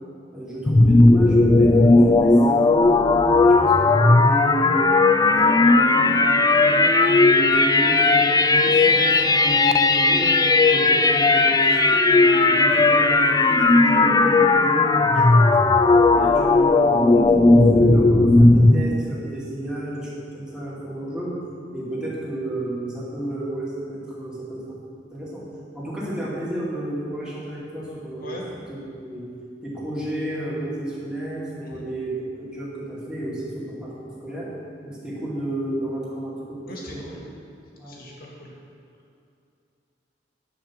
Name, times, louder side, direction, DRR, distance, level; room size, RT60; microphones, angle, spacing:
voice 1, 0.3-4.9 5.2-10.3 10.7-15.8 16.1-21.4 21.7-24.8 25.1-25.4 25.7-28.4 28.7-28.8 29.0-29.3 29.6-34.5 34.8-37.0 37.8-38.0, right 1 dB, 5° right, -8 dB, 2.5 m, -32 dB
sound 1, 0.7-18.8, left 3 dB, 20° left, 0.4 m, -16 dB
voice 2, 36.7-37.2 37.9-38.5, left 1 dB, 55° left, -2 dB, 2.1 m, -39 dB
10.5 x 5.5 x 7.3 m, 2.5 s
head